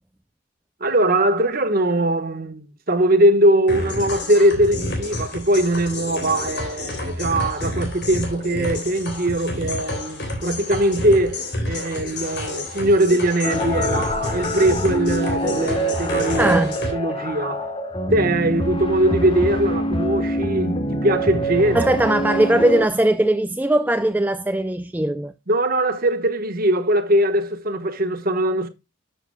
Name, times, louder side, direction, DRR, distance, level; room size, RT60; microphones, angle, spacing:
voice 1, 0.8-16.6 16.9-17.7 18.1-21.9 25.5-28.7, right 1 dB, 45° right, 1.3 m, -21 dB
sound 1, 3.7-16.9, left 1 dB, 55° left, 3.3 m, -29 dB
sound 2, 13.4-22.9, equal, 25° left, 1.2 m, -25 dB
voice 2, 16.4-16.7 21.7-25.3, right 1 dB, 10° right, 0.3 m, -19 dB
13.0 x 6.8 x 2.2 m
head